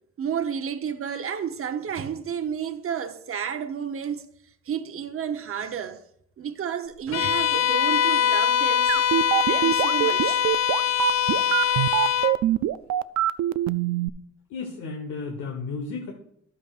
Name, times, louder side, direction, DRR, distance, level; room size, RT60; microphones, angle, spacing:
voice 1, 0.2-4.3 4.6-6.0 6.4-9.1 9.4-10.4 11.7-11.9, right 8 dB, 45° right, 0.9 m, -31 dB
Bowed string instrument, 7.1-12.4, left 9 dB, 65° left, 0.5 m, -23 dB
sound 1, 8.9-14.1, right 14 dB, 65° right, 0.4 m, -23 dB
voice 2, 14.5-16.1, left 4 dB, 85° left, 1.3 m, -33 dB
11.5 x 8.4 x 2.5 m
cardioid pair, 90°, 30 cm